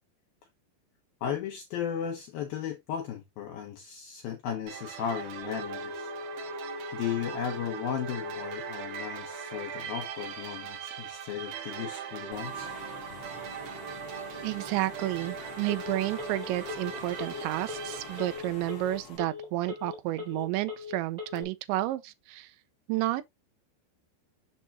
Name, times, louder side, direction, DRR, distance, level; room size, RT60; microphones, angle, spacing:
voice 1, 1.2-6.1 6.4-6.6 6.9-12.7, left 8 dB, 85° left, 2.0 m, -35 dB
sound 1, 4.7-18.4, right 9 dB, 70° right, 2.4 m, -40 dB
Telephone, 5.4-21.4, left 4 dB, 20° right, 1.0 m, -43 dB
Engine / Mechanisms, 12.3-19.2, left 5 dB, 55° left, 1.6 m, -44 dB
voice 2, 14.4-22.5 22.9-23.3, right 16 dB, 85° right, 2.7 m, -31 dB
7.5 x 5.9 x 2.8 m
omnidirectional pair, 5.8 m